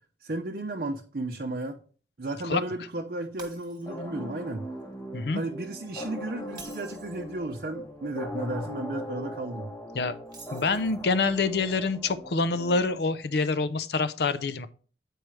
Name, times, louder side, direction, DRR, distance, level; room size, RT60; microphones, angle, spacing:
voice 1, 0.2-1.8 2.2-4.7 5.3-9.7, right 2 dB, 55° right, 0.6 m, -34 dB
Shatter, 3.4-4.2 4.6-4.8 6.4-7.3 10.3-11.1, right 4 dB, 25° right, 1.3 m, -48 dB
sound 1, 3.8-13.3, equal, 15° left, 0.9 m, -40 dB
voice 2, 10.5-14.7, left 4 dB, 65° left, 0.5 m, -26 dB
8.8 x 4.6 x 3.2 m
head